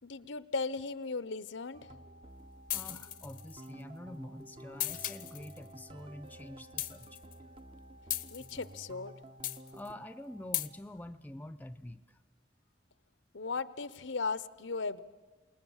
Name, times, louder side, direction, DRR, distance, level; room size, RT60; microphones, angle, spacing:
voice 1, 0.0-1.9 8.3-9.1 13.3-15.0, left 4 dB, 80° left, 16 dB, 0.8 m, -37 dB
sound 1, 1.7-9.9, right 1 dB, 30° right, 0.7 m, -52 dB
sound 2, 1.8-10.7, equal, 50° right, 3.1 m, -59 dB
sound 3, 2.7-3.7 4.8-5.6 6.8-7.3 8.1-8.8 9.4-9.9 10.5-10.7, left 14 dB, 45° left, 0.7 m, -36 dB
voice 2, 2.7-7.2 9.7-12.2, left 1 dB, 10° left, 12 dB, 0.6 m, -47 dB
28.0 x 19.5 x 7.3 m, 1.4 s
head